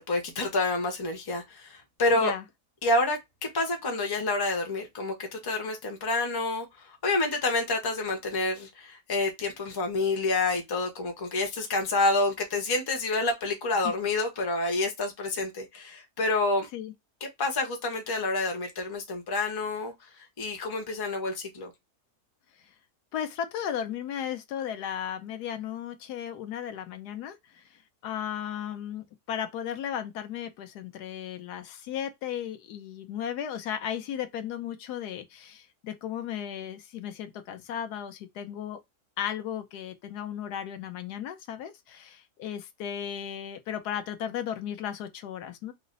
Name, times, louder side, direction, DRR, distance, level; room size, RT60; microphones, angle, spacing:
voice 1, 0.1-2.3 2.8-3.2 3.5-16.7 17.4-21.7, left 2 dB, 25° left, 0.6 m, -28 dB
voice 2, 2.1-2.4 13.8-13.9 16.7-16.9 23.1-38.8 39.2-45.7, left 9 dB, 80° left, 1.2 m, -35 dB
3.2 x 2.0 x 3.8 m
omnidirectional pair, 1.7 m